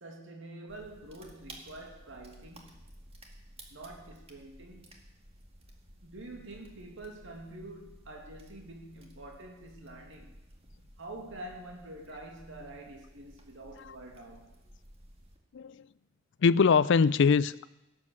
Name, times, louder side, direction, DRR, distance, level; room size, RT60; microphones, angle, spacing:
voice 1, 0.0-2.8 3.7-4.9 6.0-10.4 11.0-14.5, right 2 dB, 65° right, 2.3 m, -46 dB
sound 1, 0.7-15.4, right 1 dB, 30° right, 1.8 m, -54 dB
voice 2, 15.5-15.9 16.4-17.7, left 5 dB, 60° left, 0.4 m, -23 dB
17.0 x 7.7 x 6.3 m
head